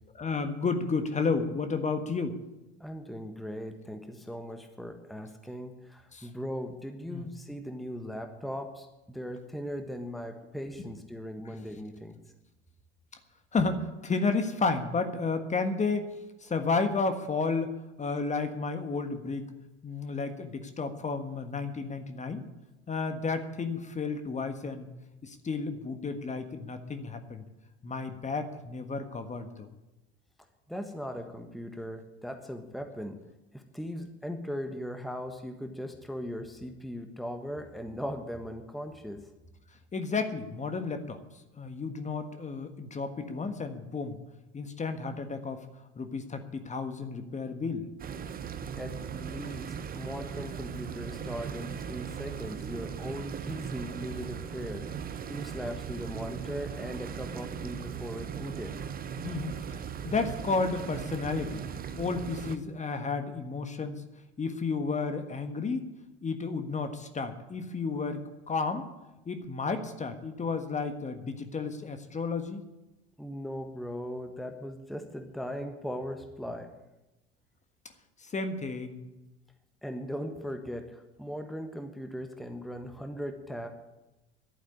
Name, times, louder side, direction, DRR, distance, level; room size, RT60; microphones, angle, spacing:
voice 1, 0.1-2.4 6.1-6.3 7.1-7.3 11.4-11.6 13.5-16.1 16.4-19.5 19.8-22.4 22.9-24.9 25.2-27.4 27.8-29.7 39.9-41.2 41.5-44.2 44.5-45.7 46.0-47.9 59.2-59.8 60.0-61.6 62.0-64.0 64.4-65.9 66.2-68.9 69.2-72.6 78.2-79.1, left 4 dB, 20° left, 8 dB, 1.5 m, -32 dB
voice 2, 2.8-12.2 30.7-33.2 33.5-39.3 48.8-54.8 55.3-58.7 73.2-76.7 79.8-83.7, equal, ahead, 6 dB, 1.4 m, -39 dB
sound 1, 48.0-62.6, right 7 dB, 25° right, 1.0 m, -38 dB
11.5 x 9.1 x 10.0 m, 1.0 s
figure-of-eight pair, 70°, 33 cm